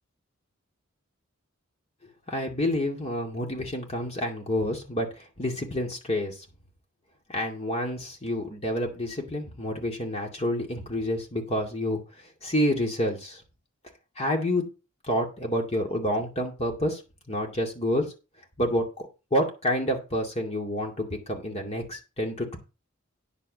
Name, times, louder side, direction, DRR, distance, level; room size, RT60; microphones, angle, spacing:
voice 1, 2.3-6.3 7.3-12.0 12.4-13.4 14.2-14.6 15.1-17.0 17.3-18.1 18.6-19.1 19.3-22.6, left 1 dB, 30° left, 2 dB, 2.3 m, -28 dB
9.8 x 5.1 x 6.8 m, 0.31 s
head